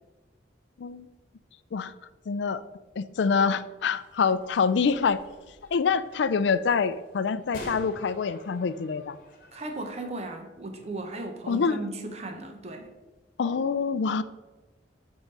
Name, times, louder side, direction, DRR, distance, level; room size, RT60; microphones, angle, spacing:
voice 1, 2.3-2.6 3.0-5.2 5.7-9.2 11.5-11.8 13.4-14.2, left 5 dB, 70° left, 14 dB, 0.4 m, -26 dB
sound 1, 3.8-10.0, left 1 dB, 45° left, 1.2 m, -48 dB
voice 2, 9.5-12.9, right 2 dB, 35° right, 4 dB, 0.8 m, -36 dB
8.0 x 3.8 x 5.4 m, 1.1 s
head